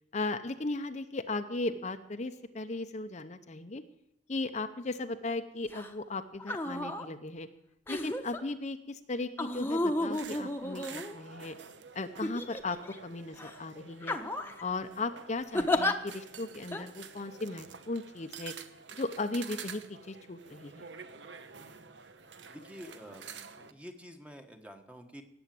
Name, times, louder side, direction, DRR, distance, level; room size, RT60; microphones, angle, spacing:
voice 1, 0.1-3.8 4.3-7.5 7.9-11.6 11.9-14.2 14.6-18.5 18.9-20.9, left 2 dB, 40° left, 7 dB, 0.8 m, -37 dB
sound 1, 5.7-5.9 6.4-7.1 7.9-8.4 9.4-11.4 12.2-13.0 13.4-13.6 14.0-14.6 15.5-15.9 16.7-16.8, left 1 dB, 10° left, 1.1 m, -32 dB
sound 2, 10.1-23.7, right 6 dB, 75° right, 1.0 m, -49 dB
voice 2, 22.5-25.2, equal, 5° right, 5 dB, 1.3 m, -48 dB
18.5 x 8.0 x 7.7 m, 0.83 s
head